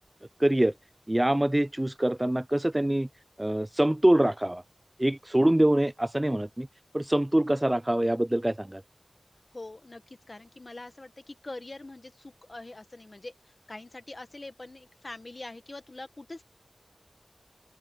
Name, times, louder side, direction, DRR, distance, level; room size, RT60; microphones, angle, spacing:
voice 1, 0.4-0.7 1.1-3.1 3.4-4.6 5.0-6.7 6.9-8.8, right 1 dB, 20° right, 0.5 m, -24 dB
voice 2, 9.5-16.4, left 2 dB, 50° left, 1.3 m, -44 dB
open air
wide cardioid pair, 45°, 0 cm